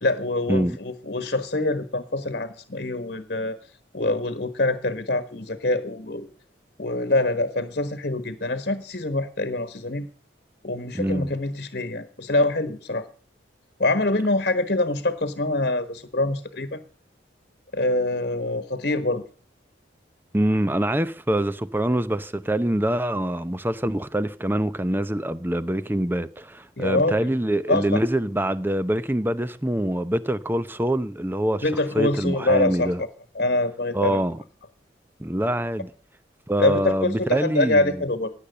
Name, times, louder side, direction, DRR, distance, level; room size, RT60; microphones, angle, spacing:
voice 1, 0.0-3.6 3.9-6.3 6.8-10.1 10.6-13.1 13.8-16.8 17.7-19.2 26.8-27.3 27.7-28.0 31.6-33.1 33.3-34.2 36.6-38.3, left 2 dB, 50° left, 1.3 m, -25 dB
voice 2, 10.9-11.3 20.3-31.6 31.9-33.0 33.9-34.4 35.2-35.9 36.5-38.0, right 1 dB, 10° right, 0.7 m, -25 dB
17.0 x 10.0 x 6.6 m
head